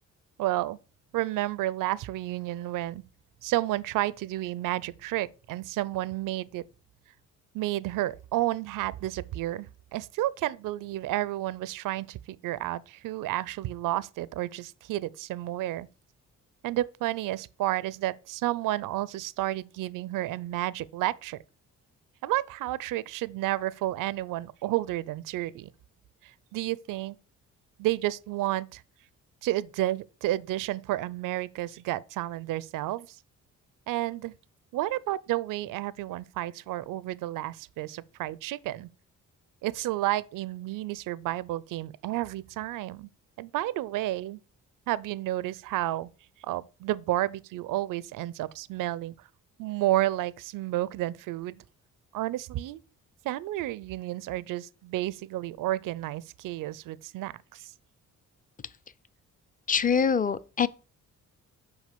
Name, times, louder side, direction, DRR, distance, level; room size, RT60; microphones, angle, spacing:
voice 1, 0.4-0.8 1.1-3.0 3.4-6.6 7.5-15.9 16.6-21.4 22.2-25.7 26.2-27.2 27.8-28.8 29.4-33.2 33.9-34.3 34.7-38.9 39.6-43.1 43.4-44.4 44.9-46.1 46.4-49.3 49.6-51.6 52.1-52.8 53.2-57.7, right 15 dB, 80° right, 0.5 m, -31 dB
voice 2, 59.7-60.7, left 6 dB, 25° left, 0.5 m, -24 dB
6.3 x 4.9 x 6.7 m
cardioid pair, 80°, 32 cm